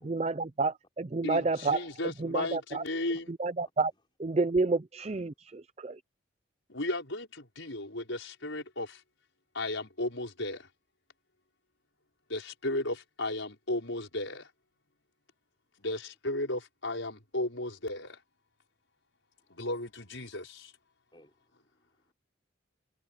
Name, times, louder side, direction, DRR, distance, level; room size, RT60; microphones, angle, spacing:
voice 1, 0.0-1.9 2.2-2.8 3.3-3.9 4.2-6.0, right 3 dB, 30° right, 0.5 m, -30 dB
voice 2, 1.2-3.3 6.7-7.3 7.6-9.0 9.5-10.7 12.3-14.5 15.8-18.2 19.5-20.7, left 1 dB, 75° left, 5.7 m, -35 dB
voice 3, 3.6-4.0 19.4-19.7 21.1-22.1, left 1 dB, 25° left, 5.4 m, -63 dB
head